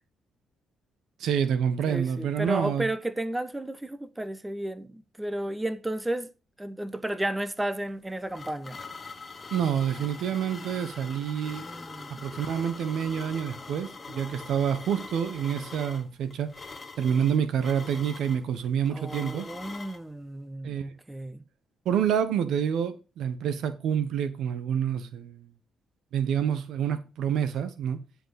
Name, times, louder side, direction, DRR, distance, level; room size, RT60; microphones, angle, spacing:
voice 1, 1.2-2.9 9.5-11.7 12.1-16.5 17.0-19.5 20.6-20.9 21.8-25.5 26.1-28.0, right 8 dB, 75° right, 1.2 m, -28 dB
voice 2, 1.9-6.3 6.6-8.8 11.6-12.3 18.9-21.4, right 1 dB, 10° right, 0.9 m, -33 dB
sound 1, 7.9-20.0, left 4 dB, 30° left, 1.1 m, -43 dB
10.0 x 5.1 x 5.0 m
cardioid pair, 90°, 0 cm